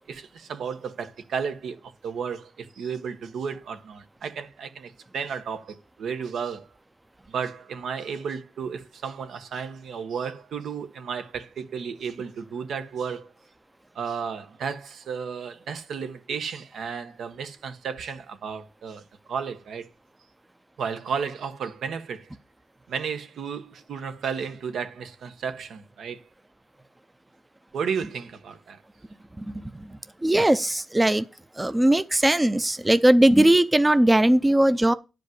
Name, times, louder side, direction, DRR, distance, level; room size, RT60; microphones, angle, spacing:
voice 1, 0.1-6.7 7.3-13.3 13.9-19.9 20.8-22.3 22.9-26.3 27.7-28.8, right 6 dB, 75° right, 1.2 m, -33 dB
voice 2, 29.4-31.3 31.5-34.9, right 1 dB, 10° right, 0.5 m, -20 dB
10.5 x 5.2 x 7.9 m
cardioid pair, 115°, 0 cm